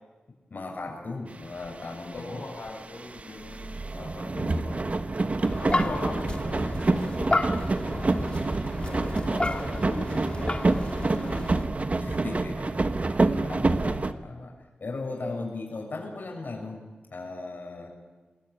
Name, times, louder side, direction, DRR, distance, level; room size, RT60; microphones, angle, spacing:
voice 1, 0.5-2.4 4.3-5.0 5.9-6.2 12.0-12.7 13.1-14.5 14.8-16.8 17.1-17.9, left 3 dB, 55° left, 1 dB, 6.9 m, -37 dB
sound 1, 1.7-1.8 1.9-2.2 2.7-14.1, right 3 dB, 40° right, 1.2 m, -27 dB
voice 2, 2.1-4.8 5.6-8.4 8.8-11.7 15.1-15.5, left 2 dB, 75° left, -2 dB, 6.2 m, -40 dB
sound 2, 5.4-11.7, left 2 dB, 30° left, 2.1 m, -32 dB
27.5 x 20.5 x 9.9 m, 1.3 s
wide cardioid pair, 125°, 4 cm